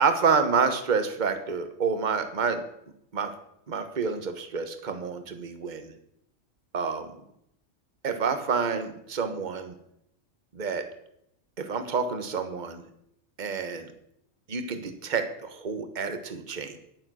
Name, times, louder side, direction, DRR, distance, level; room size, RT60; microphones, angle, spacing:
voice 1, 0.0-2.6 3.1-3.3 3.7-5.9 6.7-7.1 8.0-9.7 10.5-10.9 11.6-12.8 13.4-13.9 14.5-16.8, right 5 dB, 35° right, 8 dB, 1.2 m, -28 dB
10.5 x 9.0 x 6.2 m, 0.75 s
omnidirectional pair, 1.4 m